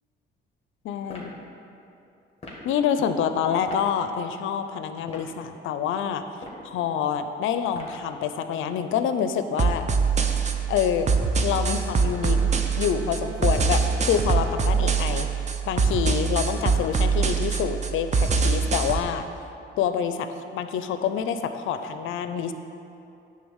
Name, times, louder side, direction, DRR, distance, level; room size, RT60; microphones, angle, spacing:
voice 1, 0.8-1.3 2.6-6.2 6.6-9.9 10.7-11.1 11.4-12.5 12.8-15.3 15.7-19.2 19.8-22.5, left 8 dB, 85° left, 9 dB, 0.5 m, -27 dB
sound 1, 1.0-1.3 2.4-2.7 3.7-3.9 4.9-5.3 6.3-6.7 7.7-8.1, left 2 dB, 30° left, 2.0 m, -42 dB
sound 2, 9.6-19.0, right 5 dB, 35° right, 0.7 m, -24 dB
sound 3, 11.7-16.1, right 2 dB, 15° right, 1.1 m, -45 dB
9.3 x 3.8 x 7.2 m, 2.7 s
cardioid pair, 90°, 20 cm